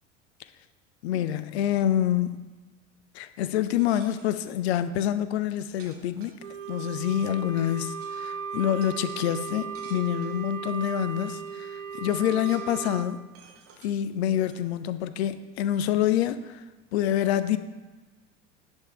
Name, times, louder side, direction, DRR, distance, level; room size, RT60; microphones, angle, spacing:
voice 1, 1.0-2.4 3.1-6.4 6.7-13.2 13.8-16.6 16.9-17.6, left 11 dB, 60° left, 13 dB, 0.5 m, -27 dB
sound 1, 3.5-4.4 5.4-5.5 5.8-6.8 7.6-7.7 8.0-8.2 8.8-10.4 11.1-11.2 11.5-11.6 11.9-12.8 13.3-13.9 14.5-14.6, right 5 dB, 40° right, 1.0 m, -53 dB
Wind instrument woodwind instrument, 6.4-13.1, right 7 dB, 90° right, 0.5 m, -36 dB
10.5 x 3.5 x 3.2 m, 1.3 s
figure-of-eight pair, 70°, 36 cm